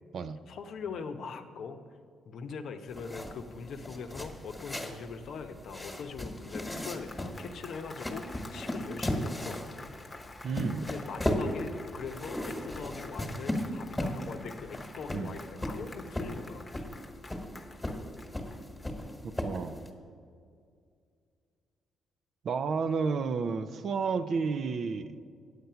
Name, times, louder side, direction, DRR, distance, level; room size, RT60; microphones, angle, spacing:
voice 1, 0.5-1.8 2.3-9.6 10.8-16.6, left 5 dB, 70° left, 7 dB, 0.8 m, -41 dB
sound 1, 2.9-19.9, left 1 dB, 10° left, 1.4 m, -37 dB
Applause, 6.6-19.1, left 2 dB, 30° left, 0.9 m, -49 dB
voice 2, 10.4-10.9 15.1-15.3 19.2-19.8 22.4-25.2, right 5 dB, 60° right, 12 dB, 0.5 m, -31 dB
9.2 x 8.1 x 5.6 m, 2.2 s
cardioid pair, 90°, 0 cm